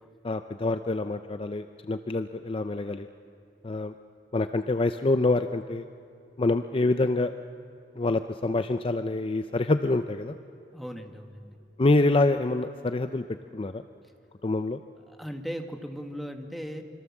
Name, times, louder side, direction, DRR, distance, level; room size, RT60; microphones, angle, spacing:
voice 1, 0.2-3.1 3.6-3.9 4.3-5.8 6.4-7.3 8.0-10.4 11.8-13.2 13.5-13.8 14.4-14.8, left 2 dB, 30° left, 9 dB, 0.5 m, -26 dB
voice 2, 10.7-11.5 15.1-16.8, equal, ahead, 4 dB, 1.5 m, -38 dB
25.5 x 25.5 x 7.3 m, 2.7 s
head